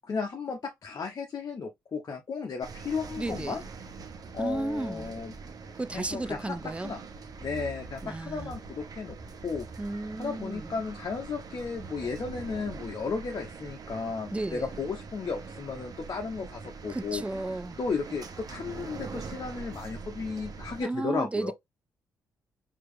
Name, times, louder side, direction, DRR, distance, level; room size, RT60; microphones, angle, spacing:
voice 1, 0.1-3.6 4.3-5.3 5.9-7.0 7.4-9.2 9.4-9.7 10.2-17.2 17.8-21.5, left 5 dB, 50° left, 1.1 m, -34 dB
sound 1, 2.6-20.8, right 4 dB, 50° right, 1.1 m, -43 dB
voice 2, 3.2-3.6 4.4-5.1 5.8-6.9 8.0-8.5 9.8-10.7 14.3-14.7 16.9-17.8 20.8-21.5, right 2 dB, 15° right, 0.5 m, -33 dB
4.7 x 3.0 x 3.3 m
hypercardioid pair, 45°, 8 cm